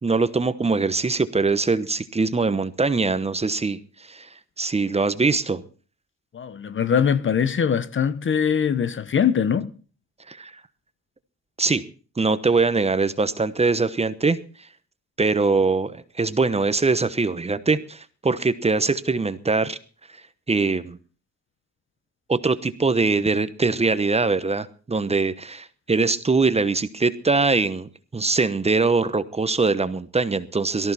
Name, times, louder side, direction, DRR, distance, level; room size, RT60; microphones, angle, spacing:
voice 1, 0.0-4.3 4.6-5.6 10.3-10.5 11.6-11.8 12.2-14.4 15.2-19.8 20.5-21.0 22.3-30.9, right 4 dB, 20° right, 1.0 m, -22 dB
voice 2, 6.3-9.7, left 7 dB, 40° left, 0.9 m, -22 dB
18.0 x 14.0 x 4.2 m
cardioid pair, 90°, 30 cm